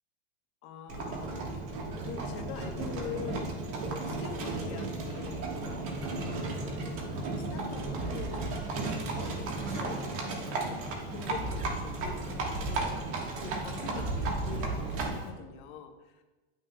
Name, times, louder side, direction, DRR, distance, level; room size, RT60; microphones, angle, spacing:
voice 1, 0.6-1.6 2.0-6.1 6.6-8.6 9.3-16.2, left 7 dB, 55° left, 4 dB, 1.0 m, -44 dB
Livestock farm animals working animals, 0.9-15.3, right 2 dB, 45° right, 1.4 m, -34 dB
10.5 x 6.2 x 2.2 m, 1.2 s
supercardioid pair, 145°, 30 cm